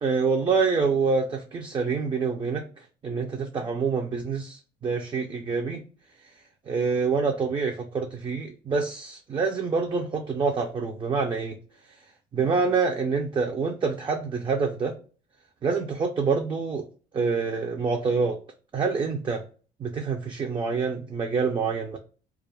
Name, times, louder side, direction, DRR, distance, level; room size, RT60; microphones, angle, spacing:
voice 1, 0.0-2.6 3.0-5.8 6.7-11.6 12.3-14.9 15.6-16.9 17.1-18.4 18.7-19.4 19.8-22.0, right 5 dB, 30° right, 3 dB, 0.4 m, -26 dB
2.3 x 2.0 x 3.0 m, 0.38 s
cardioid pair, 110°, 17 cm